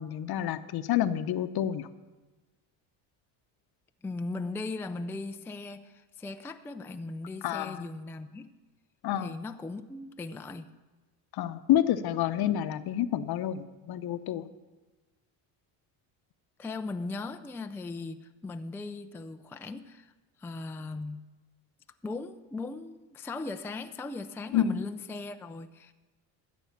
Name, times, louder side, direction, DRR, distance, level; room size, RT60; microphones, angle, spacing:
voice 1, 0.0-1.9 7.4-7.9 9.0-9.4 11.3-14.5 24.5-24.8, left 11 dB, 55° left, 12 dB, 0.9 m, -29 dB
voice 2, 4.0-8.5 9.2-10.7 16.6-20.1 20.4-21.2 22.0-25.9, left 3 dB, 5° left, 8 dB, 0.4 m, -38 dB
14.0 x 7.9 x 7.2 m, 1.2 s
cardioid pair, 100°, 46 cm